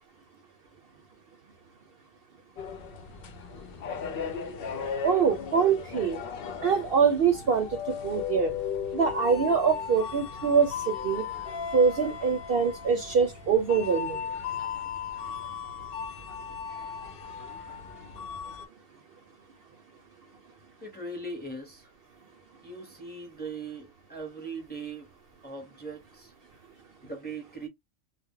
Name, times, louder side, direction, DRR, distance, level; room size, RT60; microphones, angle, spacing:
sound 1, 2.6-18.7, left 7 dB, 60° left, 0.7 m, -36 dB
voice 1, 5.0-6.2 6.6-7.7 8.0-8.5 8.9-10.7 11.0-11.2 11.7-14.2, right 6 dB, 60° right, 0.7 m, -24 dB
voice 2, 20.8-21.9 22.6-25.1 25.4-26.3 27.0-27.7, right 3 dB, 10° left, 0.7 m, -39 dB
2.2 x 2.0 x 3.6 m
omnidirectional pair, 1.3 m